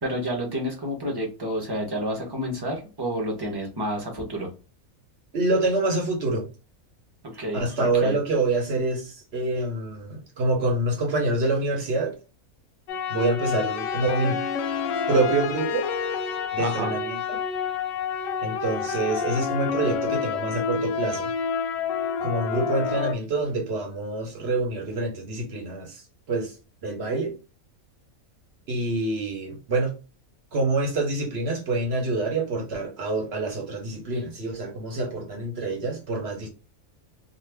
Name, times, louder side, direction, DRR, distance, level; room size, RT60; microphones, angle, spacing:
voice 1, 0.0-4.5 7.3-8.2 16.6-16.9, equal, 20° right, 0.8 m, -30 dB
voice 2, 5.3-6.5 7.5-12.1 13.1-14.4 15.1-15.9 16.5-17.2 18.4-21.3 22.2-26.0 26.3-26.5 26.8-27.3 28.7-29.9 30.5-36.5, right 2 dB, 50° right, 1.1 m, -26 dB
sound 1, 12.9-23.1, left 6 dB, 70° left, 0.9 m, -28 dB
2.6 x 2.4 x 3.3 m
omnidirectional pair, 1.5 m